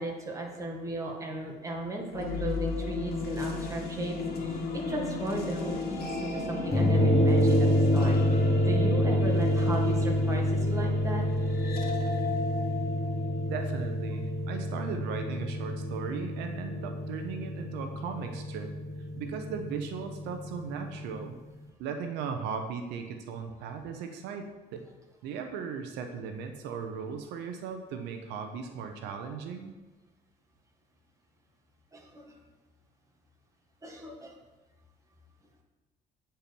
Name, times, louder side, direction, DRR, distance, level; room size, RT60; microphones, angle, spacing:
voice 1, 0.0-7.7 7.9-11.2 31.9-32.3 33.8-34.3, right 1 dB, 20° right, 0 dB, 1.7 m, -36 dB
sound 1, 2.1-13.9, left 3 dB, 65° left, 1.7 m, -35 dB
sound 2, 6.7-21.3, left 1 dB, 20° left, 1.2 m, -28 dB
voice 2, 13.5-18.8 19.2-21.4 21.8-24.8 25.2-29.8, right 6 dB, 90° right, 6 dB, 0.8 m, -37 dB
8.9 x 4.4 x 5.3 m, 1.2 s
cardioid pair, 110°, 17 cm